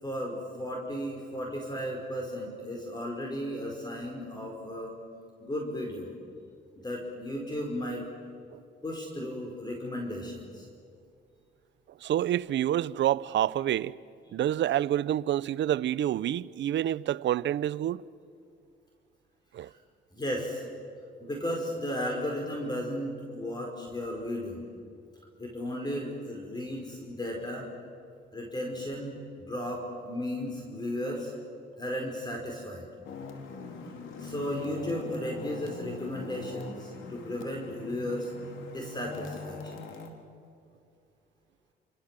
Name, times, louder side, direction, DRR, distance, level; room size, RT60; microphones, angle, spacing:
voice 1, 0.0-5.0 5.4-6.1 6.8-8.0 8.8-10.7 20.1-20.6 21.2-24.6 25.4-27.7 28.3-31.3 31.8-32.9 34.2-38.3 38.7-39.7, equal, 20° left, 5.1 m, -35 dB
voice 2, 12.0-14.0 14.3-18.0 19.5-19.7, right 12 dB, 65° right, 0.7 m, -28 dB
sound 1, 33.0-40.1, left 3 dB, 80° left, 3.7 m, -42 dB
28.0 x 27.5 x 7.7 m
cardioid pair, 90°, 20 cm